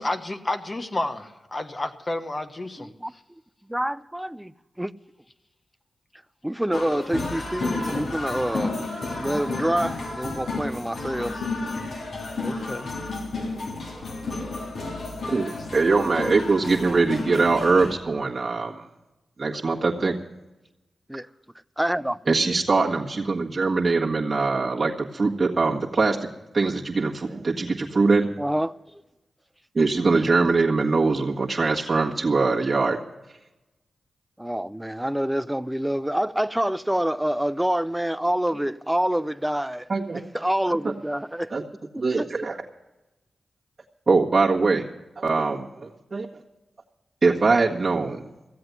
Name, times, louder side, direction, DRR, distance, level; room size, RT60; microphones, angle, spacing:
voice 1, 0.0-2.9 12.4-12.9 15.1-15.3, left 2 dB, 35° left, 1.2 m, -31 dB
voice 2, 2.8-3.1 3.7-4.5 4.8-4.9 6.4-8.8 9.2-11.4 21.1-21.3 21.8-22.2 28.4-28.7 34.4-39.9 40.3-41.5 41.9-42.3, right 1 dB, 10° right, 0.5 m, -26 dB
sound 1, 6.7-18.0, left 2 dB, 75° left, 3.2 m, -31 dB
voice 3, 15.3-18.9 19.4-20.1 22.3-26.3 26.5-28.3 29.7-33.0 39.9-40.2 40.8-40.9 41.5-41.6 42.0-42.6 44.1-44.9 45.2-46.3 47.2-48.3, right 3 dB, 50° right, 1.6 m, -22 dB
15.5 x 7.8 x 9.5 m
cardioid pair, 45°, 0 cm